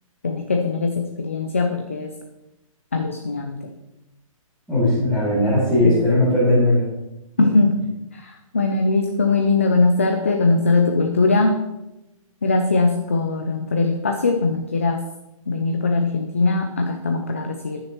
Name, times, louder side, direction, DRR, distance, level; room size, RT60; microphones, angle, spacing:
voice 1, 0.2-2.1 2.9-3.6 5.8-6.0 7.4-7.8 8.1-11.5 12.4-15.0 15.5-17.8, left 3 dB, 25° left, 4 dB, 0.4 m, -20 dB
voice 2, 4.7-6.8 7.4-7.5, left 1 dB, ahead, -17 dB, 2.3 m, -18 dB
14.5 x 6.5 x 3.0 m, 0.95 s
hypercardioid pair, 180°, 18 cm